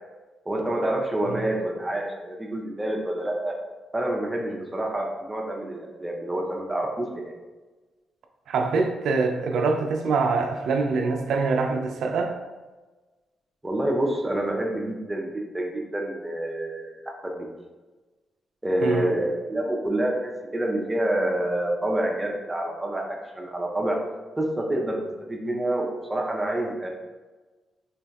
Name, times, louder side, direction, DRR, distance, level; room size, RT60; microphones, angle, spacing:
voice 1, 0.5-3.6 3.9-7.3 13.6-17.5 18.6-24.0 24.4-25.0 25.3-26.9, right 1 dB, 15° right, 1 dB, 0.5 m, -27 dB
voice 2, 8.5-12.3 18.8-19.1, right 4 dB, 75° right, 3 dB, 0.3 m, -24 dB
3.8 x 2.5 x 2.2 m, 1.2 s
cardioid pair, 85°, 0 cm